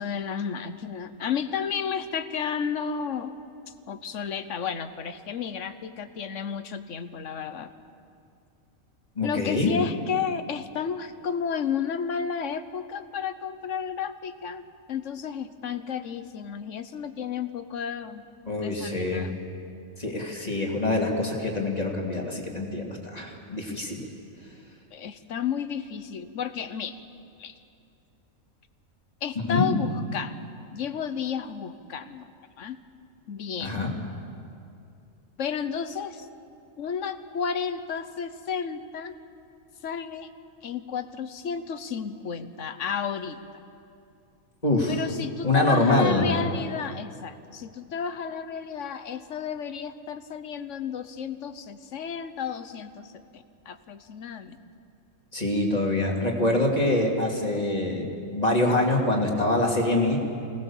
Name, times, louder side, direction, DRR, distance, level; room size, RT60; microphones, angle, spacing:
voice 1, 0.0-3.3 3.9-7.7 9.2-14.6 14.9-18.2 18.6-19.4 24.9-27.0 27.4-27.5 29.2-30.4 30.7-32.3 32.6-32.8 33.3-33.9 35.4-36.3 36.8-39.1 39.8-40.3 40.6-43.4 44.9-54.6, left 7 dB, 65° left, 11 dB, 1.3 m, -32 dB
voice 2, 9.2-9.7 18.5-19.3 20.0-24.1 29.4-29.7 33.6-33.9 44.6-44.9 45.4-46.2 55.3-60.2, left 2 dB, 30° left, 0 dB, 2.7 m, -25 dB
25.0 x 18.5 x 7.2 m, 2.6 s
omnidirectional pair, 1.4 m